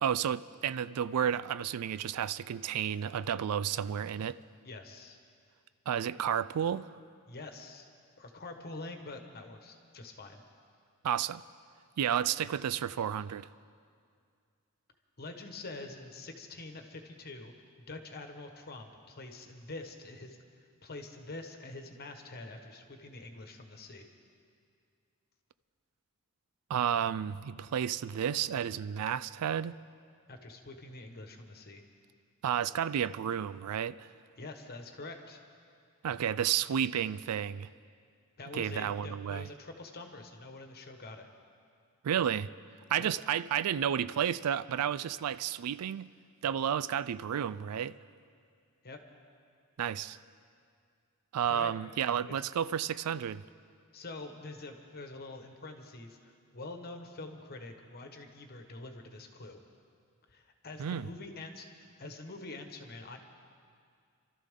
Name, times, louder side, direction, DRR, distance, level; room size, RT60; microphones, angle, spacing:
voice 1, 0.0-4.4 5.9-6.9 11.0-11.4 12.0-13.5 26.7-29.8 32.4-34.1 36.0-37.7 38.5-39.5 42.0-42.5 42.9-46.1 46.4-48.0 49.8-50.2 51.3-53.4 60.8-61.1, right 9 dB, 85° right, 16 dB, 0.4 m, -31 dB
voice 2, 4.6-5.2 7.3-7.9 8.2-10.4 15.2-24.1 30.3-31.8 34.4-35.4 38.4-41.3 43.0-43.1 48.8-49.0 51.4-51.7 52.2-52.4 53.9-59.6 60.3-61.7 62.0-63.2, left 2 dB, 45° left, 5 dB, 1.3 m, -46 dB
27.5 x 13.0 x 3.7 m, 2.2 s
head